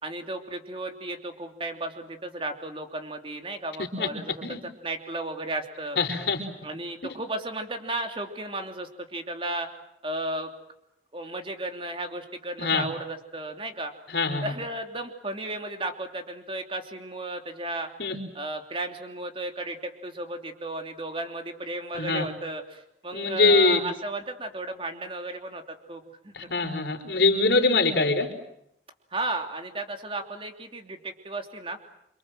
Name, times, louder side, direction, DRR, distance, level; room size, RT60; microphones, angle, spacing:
voice 1, 0.0-4.4 4.8-6.0 6.6-9.7 10.0-10.5 11.1-13.9 14.4-17.9 18.3-26.5 29.1-31.8, right 2 dB, 30° right, 5 dB, 3.1 m, -34 dB
voice 2, 6.0-6.5 12.6-12.9 14.1-14.5 18.0-18.2 21.9-22.2 23.1-23.8 26.3-28.3, left 3 dB, 75° left, 4 dB, 4.7 m, -23 dB
28.5 x 25.5 x 7.7 m, 0.79 s
head